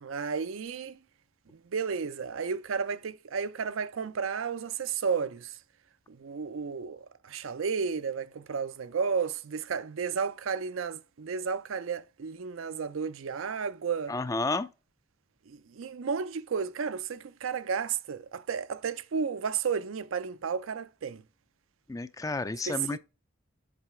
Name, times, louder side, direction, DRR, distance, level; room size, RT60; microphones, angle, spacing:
voice 1, 0.0-1.0 1.5-5.6 6.1-14.1 15.5-21.2 22.7-23.0, right 6 dB, 80° right, 0.5 m, -33 dB
voice 2, 14.1-14.7 21.9-23.0, left 3 dB, 15° left, 0.3 m, -31 dB
7.6 x 3.2 x 4.9 m
head